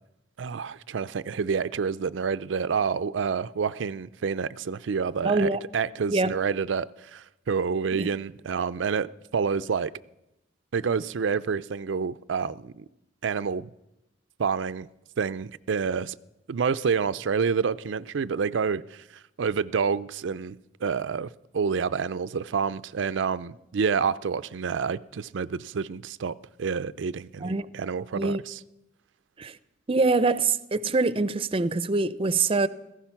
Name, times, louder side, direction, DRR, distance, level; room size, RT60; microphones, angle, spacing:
voice 1, 0.4-9.9 10.7-12.8 13.2-13.7 14.4-14.9 15.2-16.1 16.5-28.6, right 6 dB, 85° right, 0.5 m, -28 dB
voice 2, 5.2-5.6 6.1-6.4 7.9-8.1 27.4-27.7 28.1-28.4 29.4-29.6 29.9-32.7, right 3 dB, 30° right, 0.5 m, -24 dB
16.5 x 15.0 x 5.9 m
head